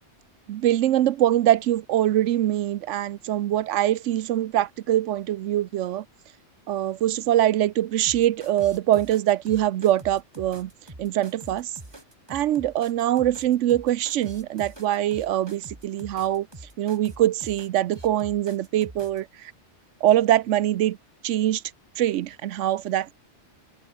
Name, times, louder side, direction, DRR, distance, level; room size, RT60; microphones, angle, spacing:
voice 1, 0.5-6.0 6.7-10.7 11.0-11.7 12.3-16.5 16.8-19.5 20.0-21.0 21.2-21.6 22.0-23.1, right 12 dB, 85° right, 1.0 m, -23 dB
sound 1, 8.1-19.2, right 1 dB, 20° right, 2.6 m, -44 dB
omnidirectional pair, 1.2 m